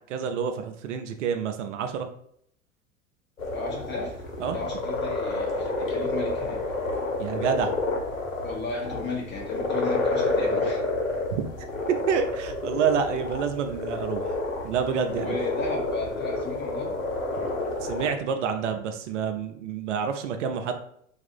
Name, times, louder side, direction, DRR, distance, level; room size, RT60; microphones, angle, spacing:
voice 1, 0.0-2.1 4.4-4.6 7.2-7.7 11.3-11.4 12.1-14.4 14.6-15.3 17.8-20.7, right 7 dB, 65° right, 7 dB, 0.5 m, -28 dB
sound 1, 3.4-18.1, left 2 dB, 80° left, 0.9 m, -29 dB
voice 2, 3.5-4.1 4.5-6.6 8.4-10.8 15.2-17.0, left 3 dB, 25° left, -2 dB, 1.4 m, -34 dB
3.4 x 2.5 x 4.1 m, 0.69 s
figure-of-eight pair, 80°, 39 cm